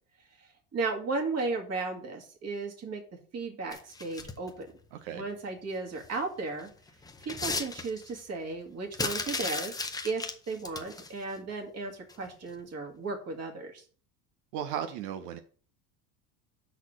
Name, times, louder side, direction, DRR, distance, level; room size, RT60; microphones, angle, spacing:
voice 1, 0.7-3.0 3.3-4.7 5.1-6.7 7.3-13.8, right 3 dB, 30° right, 2 dB, 1.9 m, -35 dB
sound 1, 3.7-4.5 6.0-6.2 6.6-8.2 8.9-11.1 12.1-12.2 12.6-12.7, left 4 dB, 10° left, 0.6 m, -35 dB
voice 2, 4.9-5.2 14.5-15.4, right 9 dB, 80° right, 8 dB, 0.9 m, -35 dB
5.9 x 4.2 x 6.3 m, 0.43 s
supercardioid pair, 130°, 48 cm